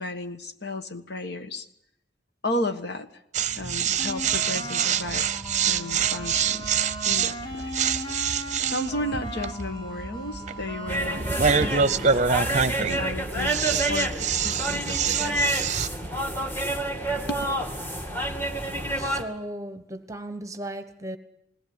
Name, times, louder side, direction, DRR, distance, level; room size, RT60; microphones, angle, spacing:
voice 1, 0.0-1.7 2.4-3.1 3.5-5.3 5.6-6.7 7.0-7.7 8.7-12.2 12.8-15.4 17.1-17.4, left 1 dB, 65° left, 1.5 m, -33 dB
sound 1, 3.3-15.9, right 6 dB, 40° right, 0.8 m, -26 dB
sound 2, 4.0-12.8, equal, 30° left, 2.9 m, -38 dB
sound 3, 10.9-19.2, right 1 dB, 10° left, 2.3 m, -29 dB
voice 2, 19.0-21.2, right 1 dB, 15° right, 1.2 m, -36 dB
20.0 x 18.0 x 9.7 m
head